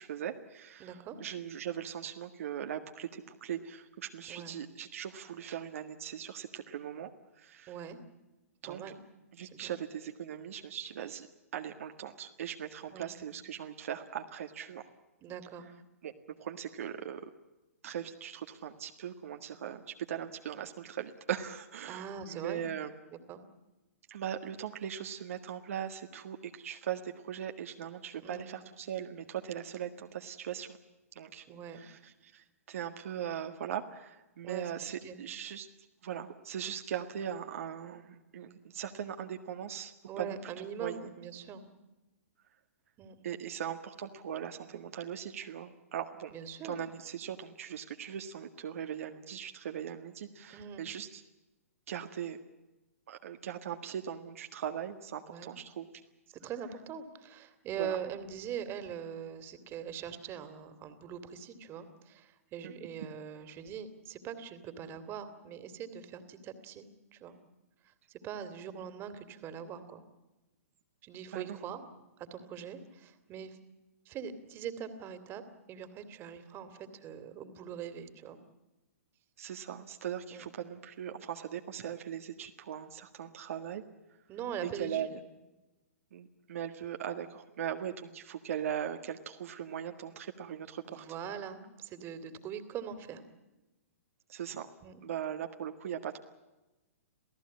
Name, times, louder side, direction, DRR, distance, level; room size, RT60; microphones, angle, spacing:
voice 1, 0.0-7.1 7.4-7.7 8.6-8.8 9.3-11.3 11.5-14.8 16.0-16.1 16.4-17.3 17.8-22.9 24.1-30.8 31.1-35.7 36.0-40.5 40.8-41.0 43.2-46.3 46.6-51.2 51.9-52.4 53.1-55.9 57.8-58.0 62.6-62.7 71.3-71.6 79.4-83.8 84.8-85.1 86.1-91.1 94.3-94.7 95.0-96.2, right 9 dB, 65° right, 5 dB, 1.7 m, -39 dB
voice 2, 0.8-1.2 4.3-4.6 7.7-8.0 8.6-9.0 9.4-9.8 12.9-13.2 15.2-15.7 21.8-22.6 23.1-23.4 28.2-28.6 31.5-31.8 34.4-34.7 35.0-35.2 40.1-41.6 43.0-43.2 46.3-46.8 50.5-50.8 55.3-55.5 56.4-66.9 67.1-67.3 67.8-70.0 71.0-71.8 72.2-73.6 74.1-75.4 75.7-78.4 80.3-80.5 84.3-85.2 90.9-93.2 94.8-95.0, right 8 dB, 30° right, 11 dB, 2.7 m, -42 dB
28.0 x 17.0 x 8.6 m, 1.1 s
hypercardioid pair, 125°, 8 cm